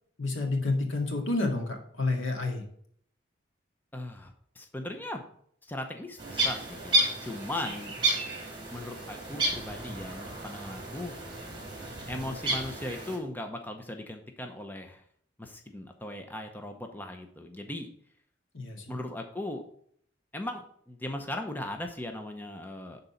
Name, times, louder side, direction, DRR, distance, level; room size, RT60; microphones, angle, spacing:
voice 1, 0.2-2.6 18.5-18.9, left 2 dB, 90° left, 2 dB, 2.0 m, -29 dB
voice 2, 3.9-5.3 5.6-7.9 8.7-11.1 12.1-15.0 15.4-17.9 18.9-19.6 20.3-23.0, left 1 dB, 10° left, 5 dB, 0.7 m, -38 dB
sound 1, 6.2-13.2, right 2 dB, 25° right, 2.6 m, -32 dB
10.5 x 4.0 x 5.6 m, 0.64 s
head